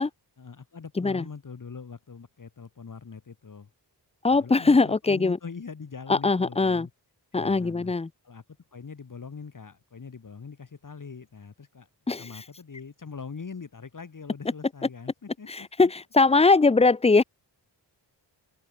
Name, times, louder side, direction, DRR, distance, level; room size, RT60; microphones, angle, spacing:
voice 1, 0.0-3.7 4.3-6.9 7.3-7.9 8.2-8.4 8.7-11.9 12.2-15.9, left 5 dB, 45° left, 2.2 m, -42 dB
voice 2, 4.2-5.4 6.1-6.9 7.3-8.1 12.1-12.3 15.5-17.2, left 3 dB, 15° left, 0.5 m, -21 dB
open air
wide cardioid pair, 85°, 42 cm